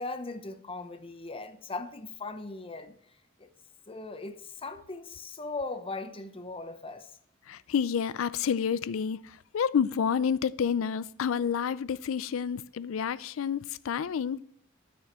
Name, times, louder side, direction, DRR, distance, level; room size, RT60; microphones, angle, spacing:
voice 1, 0.0-3.5 3.9-7.1, left 3 dB, 30° left, 0.7 m, -39 dB
voice 2, 7.5-9.2 9.5-14.4, left 7 dB, 85° left, 0.4 m, -29 dB
13.5 x 6.2 x 3.1 m
head